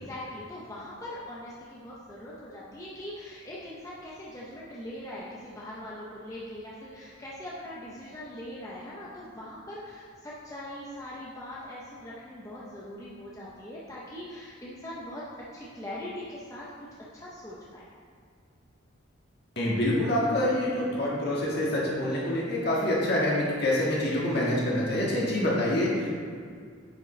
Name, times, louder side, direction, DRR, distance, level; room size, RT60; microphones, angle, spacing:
voice 1, 0.0-15.2 15.5-16.9 17.1-17.9 25.0-25.2, left 1 dB, 15° left, -7 dB, 0.7 m, -41 dB
voice 2, 19.6-26.1, left 1 dB, 50° left, -5 dB, 1.7 m, -26 dB
9.3 x 5.2 x 3.2 m, 2.1 s
head